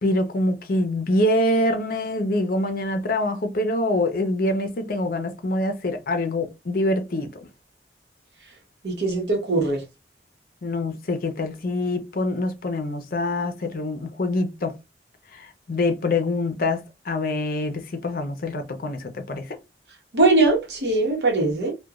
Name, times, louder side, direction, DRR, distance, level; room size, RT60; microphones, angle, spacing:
voice 1, 0.0-7.3 10.6-14.7 15.3-19.6, left 1 dB, 55° left, 0.6 m, -25 dB
voice 2, 8.8-9.8 20.1-21.7, right 2 dB, 65° right, 0.9 m, -21 dB
2.9 x 2.2 x 2.3 m
head